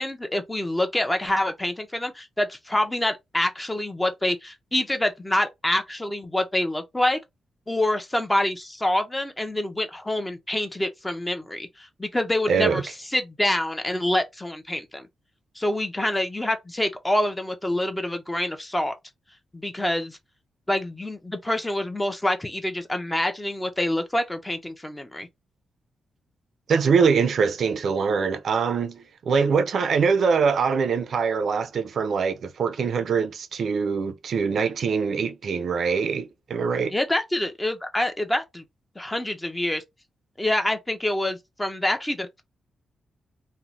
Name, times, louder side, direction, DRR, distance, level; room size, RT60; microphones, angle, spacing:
voice 1, 0.0-7.2 7.7-12.8 13.1-15.0 15.6-18.9 19.5-20.2 20.7-25.3 36.9-38.6 39.0-39.8 40.4-42.4, left 1 dB, 10° left, 0.4 m, -26 dB
voice 2, 12.5-12.8 26.7-36.9, right 5 dB, 60° right, 0.4 m, -23 dB
2.6 x 2.0 x 2.9 m
wide cardioid pair, 155°, 0 cm